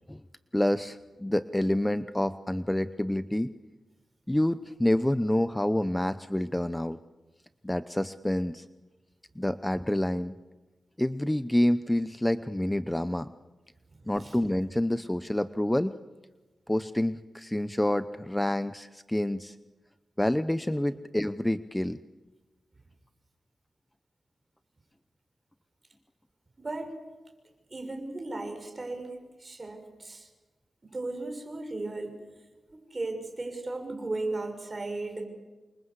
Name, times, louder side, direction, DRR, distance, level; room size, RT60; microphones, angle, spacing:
voice 1, 0.5-3.5 4.3-7.0 7.6-8.6 9.4-10.3 11.0-13.3 14.1-15.9 16.7-19.6 20.2-22.0, left 1 dB, 10° left, 12 dB, 0.8 m, -28 dB
voice 2, 26.6-26.9 27.7-30.3 30.8-32.2 32.7-35.3, right 2 dB, 30° right, 5 dB, 6.6 m, -36 dB
28.0 x 25.0 x 8.2 m, 1.2 s
cardioid pair, 80°, 0 cm